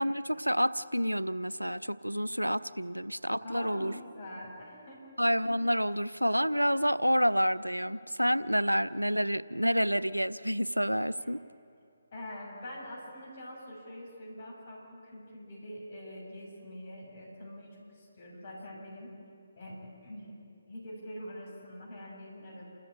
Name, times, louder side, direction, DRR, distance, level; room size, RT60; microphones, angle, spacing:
voice 1, 0.0-3.9 5.2-11.4, equal, 90° right, 17 dB, 0.6 m, -28 dB
voice 2, 3.4-5.2 11.2-11.3 12.1-19.2 19.6-20.4 20.7-22.6, left 1 dB, 45° left, -2 dB, 7.0 m, -44 dB
28.0 x 14.0 x 9.6 m, 2.7 s
figure-of-eight pair, 145°, 0 cm